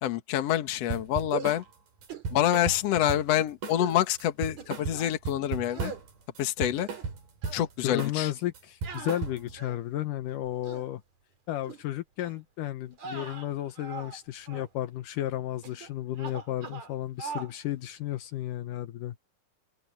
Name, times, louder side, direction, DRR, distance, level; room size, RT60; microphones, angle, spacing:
voice 1, 0.0-1.6 2.3-5.9 6.4-6.9 7.5-8.3, left 12 dB, 55° left, 2.1 m, -27 dB
sound 1, 0.9-1.6 2.0-3.4 3.6-3.9 4.2-6.1 6.4-7.6 8.0-8.3 8.5-9.6, right 4 dB, 75° right, 5.5 m, -35 dB
sound 2, 1.3-1.7 2.1-2.3 2.6-3.2 3.8-4.0 4.6-5.1 5.7-6.0 6.6-7.2 7.4-7.7 8.8-9.9 10.4-10.9 11.6-11.8 12.2-12.4 12.9-14.2 14.5-14.7 15.6-15.9 16.2-16.9 17.2-17.5, right 6 dB, 55° right, 4.8 m, -41 dB
voice 2, 7.8-11.0 11.5-19.2, left 13 dB, 75° left, 2.4 m, -33 dB
open air
omnidirectional pair, 3.9 m